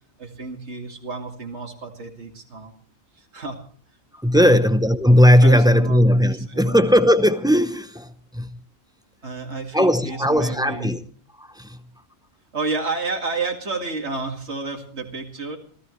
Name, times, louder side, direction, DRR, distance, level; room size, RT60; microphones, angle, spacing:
voice 1, 0.2-2.7 3.1-3.6 4.3-4.6 5.4-6.8 9.2-11.0 12.5-15.6, right 3 dB, 75° right, 2.5 m, -31 dB
voice 2, 4.1-8.6 9.7-11.0 11.4-11.8, equal, 5° right, 0.7 m, -17 dB
27.0 x 14.5 x 3.2 m
omnidirectional pair, 1.2 m